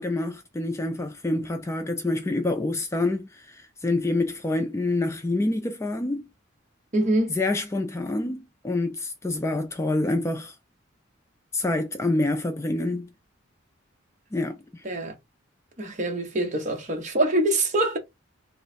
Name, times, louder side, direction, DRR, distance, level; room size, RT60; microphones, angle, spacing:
voice 1, 0.0-6.3 7.3-10.6 11.5-13.1 14.3-14.8, left 2 dB, 15° left, 0.3 m, -27 dB
voice 2, 6.9-7.4 14.8-15.1 15.8-18.0, right 1 dB, 40° right, 0.9 m, -24 dB
3.1 x 2.1 x 4.1 m
head